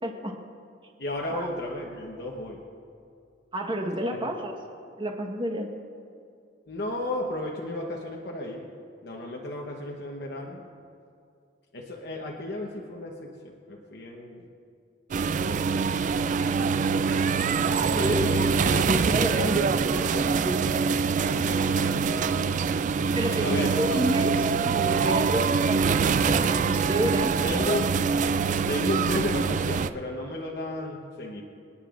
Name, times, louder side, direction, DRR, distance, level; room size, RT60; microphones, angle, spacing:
voice 1, 0.0-0.4 1.3-1.5 3.5-4.5 5.0-5.7 17.9-18.6 18.8-20.6 23.1-27.4, equal, 30° right, 2 dB, 1.3 m, -30 dB
voice 2, 1.0-2.6 6.7-8.7 9.0-10.7 11.7-14.4 15.4-16.6 17.8-19.0 21.2-22.6 23.4-24.0 27.4-27.9 28.7-31.4, left 1 dB, 65° left, -1 dB, 1.1 m, -34 dB
sound 1, 15.1-29.9, right 5 dB, 45° right, 0.3 m, -24 dB
27.0 x 9.8 x 2.5 m, 2.4 s
head